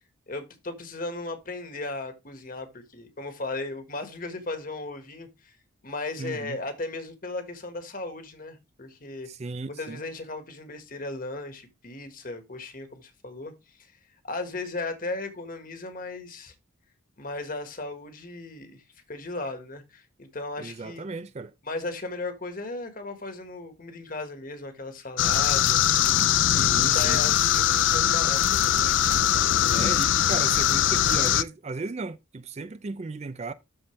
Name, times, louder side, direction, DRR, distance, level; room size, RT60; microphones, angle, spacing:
voice 1, 0.3-5.6 5.8-9.3 9.7-13.9 14.2-16.5 17.2-18.8 19.1-21.1 21.6-25.8 26.5-28.9, left 2 dB, 40° left, 1.6 m, -36 dB
voice 2, 6.2-6.6 9.3-10.0 20.6-21.5 26.6-27.3 29.7-33.5, right 3 dB, 30° right, 0.4 m, -35 dB
sound 1, 25.2-31.4, left 11 dB, 60° left, 0.4 m, -22 dB
13.0 x 4.4 x 3.2 m
head